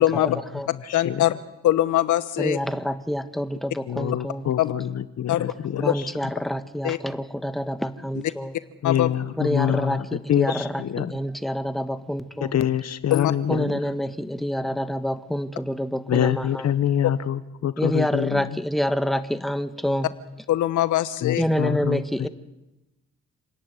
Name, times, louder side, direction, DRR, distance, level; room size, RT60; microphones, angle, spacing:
voice 1, 0.0-0.4 0.9-1.3 1.6-2.6 4.6-4.7 5.3-5.5 5.8-5.9 6.8-7.0 8.1-8.2 8.8-9.1 13.1-13.3 20.5-21.4, left 13 dB, 75° left, 14 dB, 1.1 m, -22 dB
voice 2, 0.7-1.2 3.9-6.1 8.8-11.1 12.4-13.8 16.1-18.5 21.2-22.3, left 10 dB, 60° left, 14 dB, 1.2 m, -26 dB
voice 3, 2.4-4.5 5.8-8.6 9.4-12.5 13.5-16.7 17.8-20.1 21.4-22.3, equal, ahead, 10 dB, 1.3 m, -27 dB
28.0 x 10.5 x 9.5 m, 1.0 s
cardioid pair, 90°, 30 cm